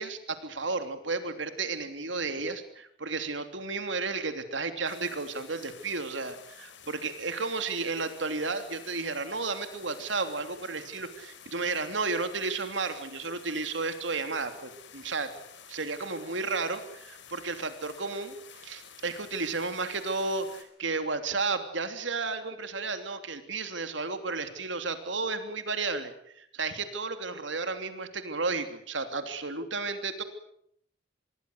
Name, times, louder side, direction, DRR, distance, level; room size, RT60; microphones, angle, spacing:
voice 1, 0.0-15.3 15.7-18.3 18.6-30.2, right 3 dB, 75° right, 8 dB, 3.2 m, -33 dB
sound 1, 4.9-20.6, left 7 dB, 75° left, 4.4 m, -51 dB
26.0 x 22.5 x 8.1 m, 0.68 s
head